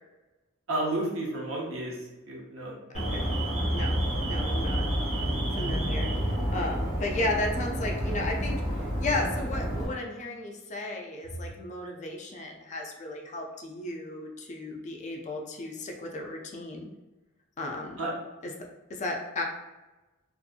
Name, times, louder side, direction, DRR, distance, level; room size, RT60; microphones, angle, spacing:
voice 1, 0.7-1.9 2.3-2.7 18.0-18.1, right 1 dB, 65° right, -3 dB, 0.8 m, -31 dB
Alarm, 2.9-9.9, equal, 30° right, 0.9 m, -29 dB
voice 2, 4.3-4.9 5.5-6.1 6.5-16.9 17.6-18.0 18.4-18.5 18.9-19.4, left 2 dB, 35° left, 1 dB, 0.4 m, -34 dB
2.6 x 2.5 x 2.4 m, 1.1 s
head